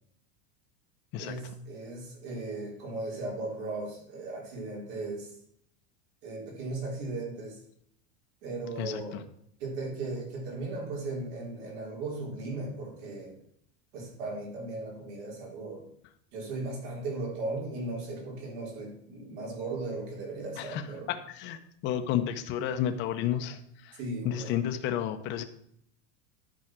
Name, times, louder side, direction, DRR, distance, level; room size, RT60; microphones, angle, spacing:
voice 1, 1.2-5.4 6.2-7.6 8.4-9.2 9.6-13.4 13.9-15.9 16.3-21.1 23.9-24.6, right 2 dB, 55° right, 0 dB, 3.6 m, -37 dB
voice 2, 21.1-23.6 24.2-25.4, left 10 dB, 30° left, 6 dB, 0.8 m, -31 dB
11.5 x 4.8 x 6.0 m, 0.70 s
supercardioid pair, 170°, 36 cm